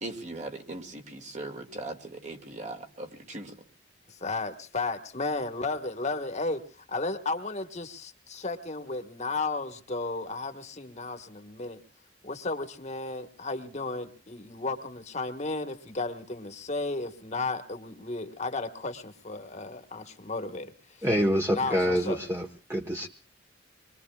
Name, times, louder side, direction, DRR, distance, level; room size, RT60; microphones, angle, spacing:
voice 1, 0.0-3.5, right 2 dB, 40° right, 2.2 m, -39 dB
voice 2, 4.1-11.8 12.2-21.1 21.5-22.2, left 3 dB, 40° left, 1.5 m, -34 dB
voice 3, 21.0-23.1, equal, 15° right, 1.3 m, -26 dB
26.5 x 22.5 x 2.4 m
head